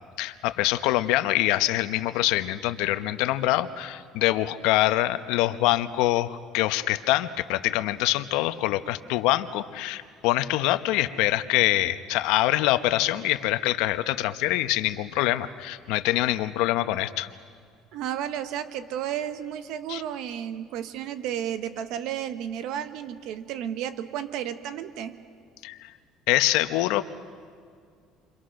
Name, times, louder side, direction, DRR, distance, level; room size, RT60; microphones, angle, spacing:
voice 1, 0.2-17.3 19.9-20.0 25.6-25.9 26.3-27.0, left 16 dB, 80° left, 11 dB, 1.0 m, -25 dB
voice 2, 17.9-25.2, right 10 dB, 70° right, 11 dB, 1.0 m, -32 dB
30.0 x 25.0 x 6.4 m, 2.2 s
cardioid pair, 135°, 0 cm